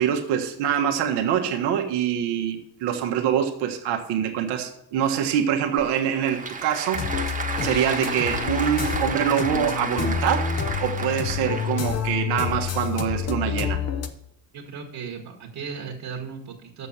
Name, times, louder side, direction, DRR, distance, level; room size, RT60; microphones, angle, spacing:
voice 1, 0.0-7.1 7.6-10.5 10.8-13.8, right 9 dB, 80° right, 4 dB, 1.4 m, -25 dB
Applause / Crowd, 5.8-12.0, right 4 dB, 20° right, 1.3 m, -32 dB
sound 1, 6.9-14.1, left 7 dB, 40° left, 0.9 m, -28 dB
voice 2, 14.5-16.9, right 6 dB, 55° right, 0 dB, 1.7 m, -36 dB
6.9 x 6.5 x 7.2 m, 0.76 s
cardioid pair, 95°, 40 cm